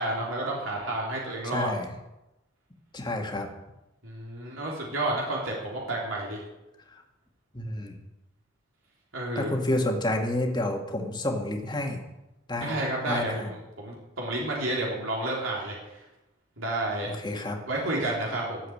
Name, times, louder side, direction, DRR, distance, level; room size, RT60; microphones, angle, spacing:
voice 1, 0.0-1.7 4.0-6.5 9.1-9.6 12.6-16.1 16.6-17.1 17.7-18.7, right 2 dB, 80° right, -3 dB, 3.5 m, -31 dB
voice 2, 1.4-1.9 2.9-3.5 7.5-8.0 9.4-12.0 12.5-12.7 13.1-13.5 17.2-17.6, left 1 dB, 20° left, 2 dB, 2.0 m, -29 dB
13.0 x 7.7 x 8.5 m, 0.95 s
head